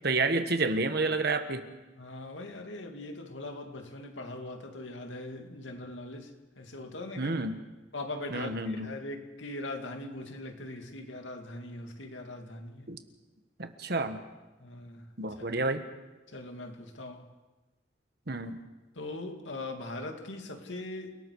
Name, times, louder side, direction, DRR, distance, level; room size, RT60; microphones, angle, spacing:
voice 1, 0.0-1.6 7.2-7.6 8.3-8.9 12.9-13.0 13.6-14.2 15.2-15.8 18.3-18.6, right 3 dB, 55° right, 8 dB, 1.4 m, -29 dB
voice 2, 2.0-6.3 6.6-7.3 7.9-12.9 14.6-15.1 16.3-17.3 18.9-21.2, left 2 dB, 85° left, 4 dB, 2.4 m, -41 dB
29.0 x 18.5 x 4.8 m, 1.1 s
head